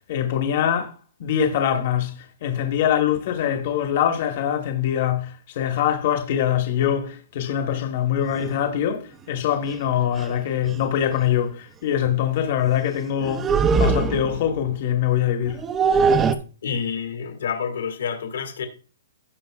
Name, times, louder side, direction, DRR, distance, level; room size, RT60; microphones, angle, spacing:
voice 1, 0.0-15.6, left 9 dB, 35° left, 1.1 m, -23 dB
sound 1, 8.3-8.5 9.7-9.8 10.2-10.3 10.7-10.9 13.2-14.5 15.4-16.4, right 5 dB, 10° right, 0.4 m, -21 dB
voice 2, 16.6-18.7, left 6 dB, 60° left, 1.8 m, -28 dB
15.5 x 5.3 x 2.3 m
hypercardioid pair, 175°, 0 cm